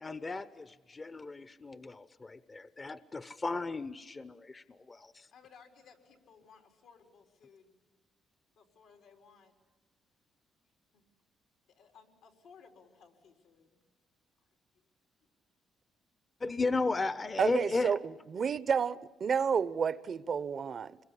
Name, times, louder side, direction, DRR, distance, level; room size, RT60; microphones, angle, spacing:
voice 1, 0.0-5.3 16.4-17.9, left 3 dB, 30° left, 0.8 m, -35 dB
voice 2, 5.3-7.8 8.6-9.5 10.9-11.0 11.7-13.7, left 6 dB, 85° left, 4.3 m, -59 dB
voice 3, 17.4-18.0 18.3-21.0, right 6 dB, 50° right, 0.8 m, -30 dB
26.0 x 22.0 x 9.9 m
cardioid pair, 90°, 0 cm